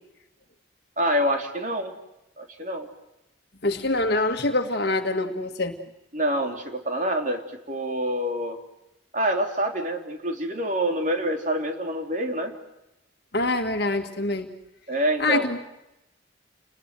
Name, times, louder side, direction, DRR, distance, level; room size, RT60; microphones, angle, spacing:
voice 1, 1.0-2.0 2.4-2.9 6.1-7.4 7.7-8.6 9.1-12.5 14.9-15.5, right 1 dB, 40° right, 4 dB, 3.5 m, -26 dB
voice 2, 3.6-5.8 13.3-14.5 15.2-15.6, left 2 dB, 55° left, 4 dB, 1.8 m, -25 dB
29.5 x 21.0 x 7.7 m, 0.92 s
head